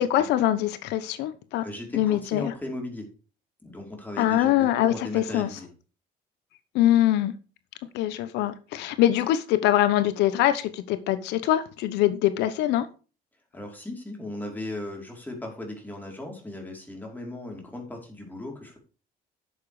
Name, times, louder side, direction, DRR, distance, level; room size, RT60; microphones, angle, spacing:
voice 1, 0.0-1.6 1.9-2.5 4.2-5.5 6.7-7.3 7.9-12.9, left 13 dB, 90° left, 13 dB, 1.0 m, -23 dB
voice 2, 1.6-3.1 3.6-5.7 13.5-18.8, left 1 dB, 10° left, 1 dB, 5.0 m, -37 dB
11.0 x 7.2 x 4.9 m, 0.34 s
cardioid pair, 110°, 17 cm